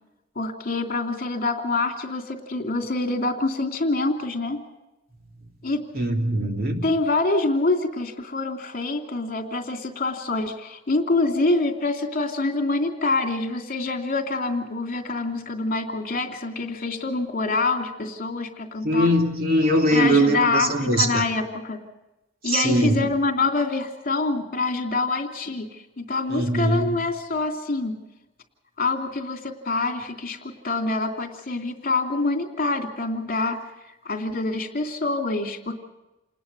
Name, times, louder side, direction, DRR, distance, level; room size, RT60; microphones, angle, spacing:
voice 1, 0.3-4.6 5.6-5.8 6.3-6.4 6.8-19.1 19.9-21.8 22.4-28.0 28.8-33.6 34.0-35.7, left 3 dB, 45° left, 2.9 m, -26 dB
voice 2, 5.9-6.8 18.8-21.2 22.4-23.1 26.3-26.9, equal, 50° right, 2.9 m, -21 dB
28.5 x 20.0 x 5.5 m
head